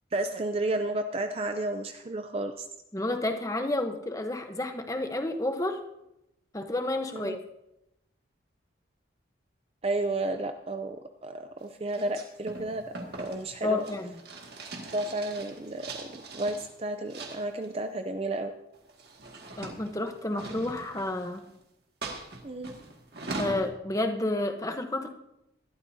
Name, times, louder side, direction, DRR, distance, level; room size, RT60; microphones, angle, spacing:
voice 1, 0.1-2.7 7.1-7.4 9.8-12.8 13.2-13.8 14.9-18.5 22.4-22.7, right 2 dB, 30° right, 7 dB, 0.5 m, -32 dB
voice 2, 2.9-5.8 6.5-7.4 13.6-14.2 19.6-21.4 23.4-25.1, left 2 dB, 15° left, 6 dB, 0.9 m, -30 dB
sound 1, 11.9-16.7 17.1-17.8 18.7-21.5 22.0-23.7, right 2 dB, 55° right, 2.0 m, -41 dB
20.5 x 13.0 x 2.7 m, 0.87 s
head